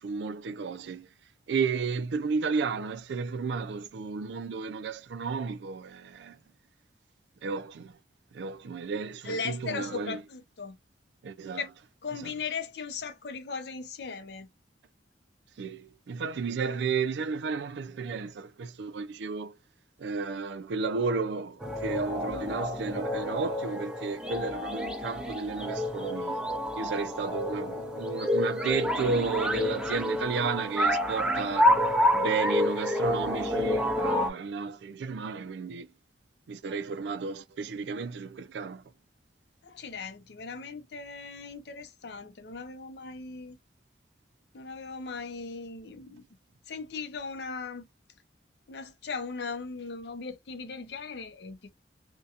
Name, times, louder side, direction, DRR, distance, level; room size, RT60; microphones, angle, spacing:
voice 1, 0.0-1.1 1.5-6.4 7.4-8.0 8.3-10.2 11.2-11.6 12.2-12.3 15.6-19.6 20.0-26.4 26.8-31.7 32.1-35.9 36.5-38.8, right 4 dB, 70° right, 0.3 m, -33 dB
voice 2, 9.2-10.8 11.5-11.7 12.0-14.5 39.6-43.6 44.5-46.2 46.7-47.9 48.7-51.7, left 4 dB, 65° left, 0.5 m, -38 dB
sound 1, 21.6-34.3, left 1 dB, 5° right, 0.4 m, -28 dB
2.7 x 2.2 x 2.4 m
head